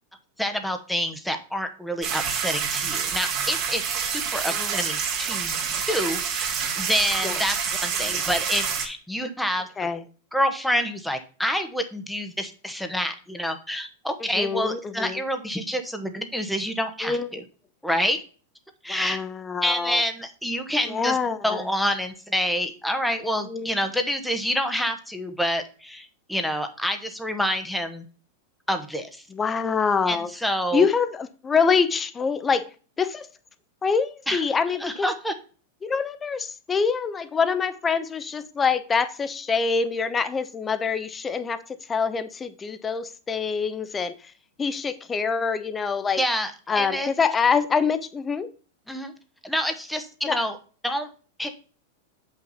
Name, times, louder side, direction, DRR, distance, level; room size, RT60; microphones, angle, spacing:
voice 1, 0.4-7.6 7.8-9.7 10.3-17.4 17.8-18.2 18.8-19.2 19.6-21.2 21.4-28.0 28.7-29.2 30.1-30.8 34.3-34.4 34.8-35.3 46.2-47.1 48.9-49.1 49.4-50.6 50.8-51.1 51.4-51.5, equal, ahead, 1.1 m, -27 dB
sound 1, 2.0-8.9, right 7 dB, 45° right, 2.2 m, -27 dB
voice 2, 4.5-4.8 7.2-7.4 8.1-8.2 9.8-10.0 14.3-15.2 17.0-17.3 18.9-20.0 20.9-21.7 23.4-23.7 29.3-30.3 30.7-32.7 33.0-33.3 33.8-35.1 35.8-41.6 41.9-44.1 44.6-46.2 46.7-48.5 50.2-50.4, left 5 dB, 20° left, 0.8 m, -25 dB
7.6 x 5.7 x 4.1 m
hypercardioid pair, 100°, 0 cm